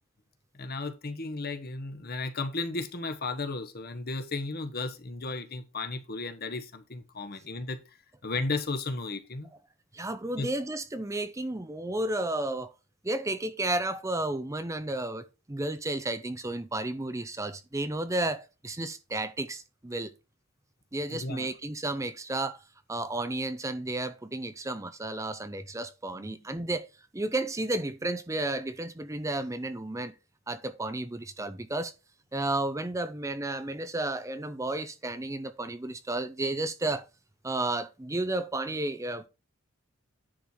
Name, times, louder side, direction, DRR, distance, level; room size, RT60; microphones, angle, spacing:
voice 1, 0.6-7.8 8.2-9.5 10.4-10.5 21.1-21.5 26.1-26.4, left 3 dB, 50° left, 1.3 m, -34 dB
voice 2, 9.9-12.7 13.0-20.1 20.9-22.6 22.9-26.9 27.1-30.1 30.5-31.9 32.3-37.1 37.4-39.3, right 2 dB, 15° right, 0.6 m, -32 dB
10.5 x 4.5 x 4.5 m
head